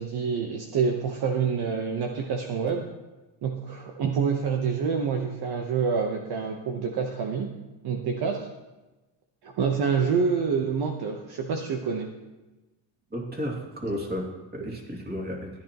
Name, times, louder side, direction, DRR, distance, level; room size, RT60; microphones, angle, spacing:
voice 1, 0.0-2.8 3.4-7.6 7.8-8.5 9.4-12.1 14.6-14.7, right 6 dB, 50° right, 2 dB, 1.1 m, -27 dB
voice 2, 13.1-15.5, equal, 20° right, 0 dB, 2.5 m, -33 dB
14.0 x 10.0 x 3.0 m, 1.1 s
cardioid pair, 110°, 48 cm